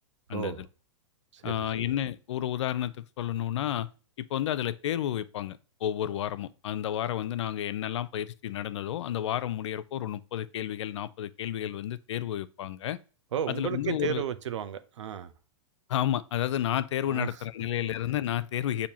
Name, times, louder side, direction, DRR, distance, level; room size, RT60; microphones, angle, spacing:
voice 1, 0.3-0.6 1.3-1.7 13.3-15.3 17.1-17.4, right 9 dB, 75° right, 0.6 m, -33 dB
voice 2, 1.4-3.9 4.2-13.0 13.5-14.2 15.9-18.9, left 11 dB, 75° left, 0.4 m, -31 dB
6.9 x 2.7 x 2.8 m
hypercardioid pair, 125°, 15 cm